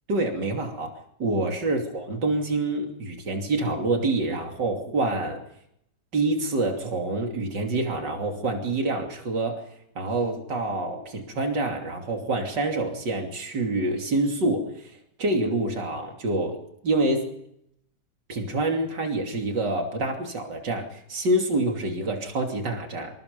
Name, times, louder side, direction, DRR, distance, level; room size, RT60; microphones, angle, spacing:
voice 1, 0.1-5.4 6.1-9.6 10.0-17.4 18.3-23.1, right 2 dB, 80° right, 2 dB, 3.6 m, -27 dB
27.5 x 25.5 x 5.4 m, 0.75 s
omnidirectional pair, 1.9 m